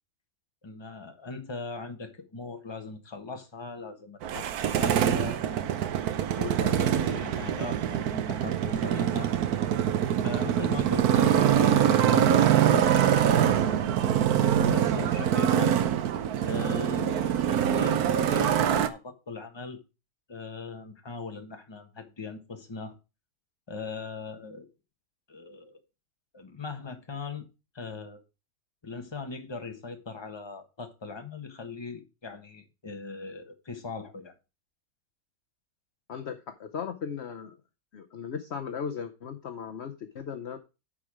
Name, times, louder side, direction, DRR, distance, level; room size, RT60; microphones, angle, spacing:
voice 1, 0.6-5.4 6.3-9.3 10.2-15.8 16.4-19.8 20.3-22.9 23.7-24.7 25.3-25.8 26.3-27.4 27.7-28.2 28.8-34.3, left 4 dB, 20° left, 1.2 m, -40 dB
Motorcycle, 4.2-18.9, right 9 dB, 70° right, 1.2 m, -24 dB
voice 2, 36.1-37.5 37.9-40.6, left 7 dB, 50° left, 0.9 m, -37 dB
9.9 x 4.8 x 4.9 m
omnidirectional pair, 1.7 m